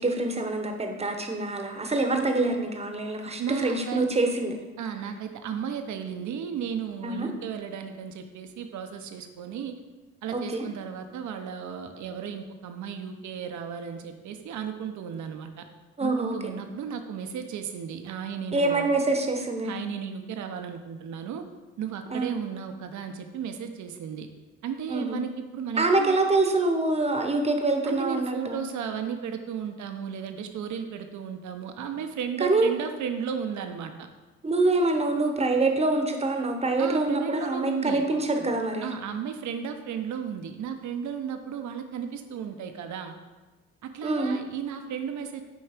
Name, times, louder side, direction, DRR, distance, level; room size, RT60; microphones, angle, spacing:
voice 1, 0.0-4.5 7.0-7.3 10.3-10.6 16.0-16.5 18.5-19.7 22.1-22.3 24.9-25.2 25.8-28.6 32.4-32.7 34.4-38.9 44.0-44.4, right 2 dB, 20° right, 4 dB, 1.0 m, -25 dB
voice 2, 3.4-4.0 4.8-9.7 10.2-15.6 16.0-18.9 19.6-21.5 21.8-24.3 24.6-26.2 27.9-34.1 36.8-38.0 38.8-43.1 43.8-45.4, right 7 dB, 70° right, 7 dB, 0.9 m, -34 dB
9.2 x 3.2 x 5.0 m, 1.2 s
cardioid pair, 90°, 30 cm